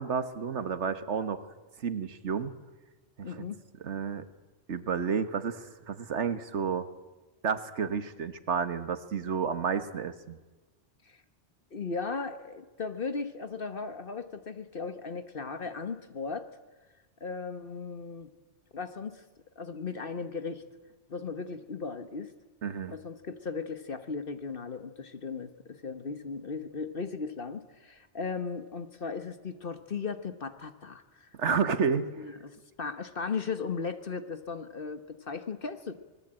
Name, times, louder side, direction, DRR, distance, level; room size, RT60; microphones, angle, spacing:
voice 1, 0.0-1.5 1.8-2.5 3.2-3.4 3.8-4.3 4.7-6.9 7.4-10.4 22.6-23.0 31.4-32.1, right 6 dB, 75° right, 12 dB, 1.6 m, -31 dB
voice 2, 3.2-3.6 11.1-11.2 11.7-16.5 17.2-18.3 18.7-19.2 19.6-20.6 21.1-22.3 22.9-31.7 32.2-35.9, left 4 dB, 50° left, 10 dB, 1.4 m, -37 dB
26.0 x 20.0 x 8.9 m, 1.2 s
omnidirectional pair, 1.2 m